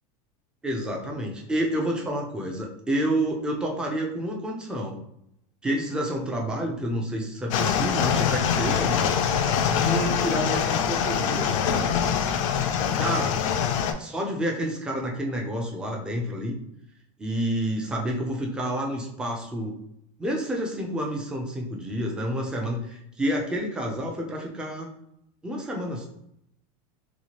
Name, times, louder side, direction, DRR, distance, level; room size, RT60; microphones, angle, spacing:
voice 1, 0.6-5.0 5.6-9.1 9.7-12.0 12.9-13.4 14.0-16.6 17.2-19.7 20.2-24.9 25.4-26.1, equal, 5° right, 1 dB, 0.3 m, -29 dB
sound 1, 7.5-13.9, left 7 dB, 75° left, 0.4 m, -24 dB
2.9 x 2.4 x 2.8 m, 0.77 s
supercardioid pair, 170°, 17 cm